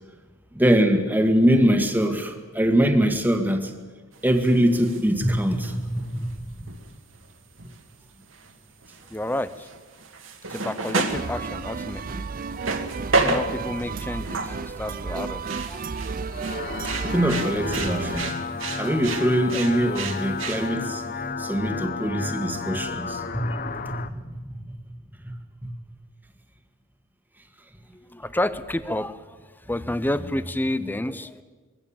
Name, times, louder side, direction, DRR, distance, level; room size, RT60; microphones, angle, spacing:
voice 1, 0.5-3.7 4.2-6.3 17.0-18.4 18.8-21.0 21.4-24.2 25.2-25.3 25.6-25.7, equal, 10° right, 6 dB, 1.8 m, -23 dB
sound 1, 4.1-5.0 5.4-7.8 8.2-8.5 8.8-14.6 15.0-20.7, right 3 dB, 65° right, 2.2 m, -31 dB
voice 2, 9.1-9.7 10.5-12.3 13.1-15.8 27.9-31.4, left 1 dB, 10° left, 14 dB, 0.7 m, -30 dB
sound 2, 11.1-18.3, right 4 dB, 40° right, 0.6 m, -33 dB
sound 3, 16.1-24.1, left 4 dB, 45° left, 0.9 m, -32 dB
22.5 x 16.0 x 8.8 m, 1.4 s
head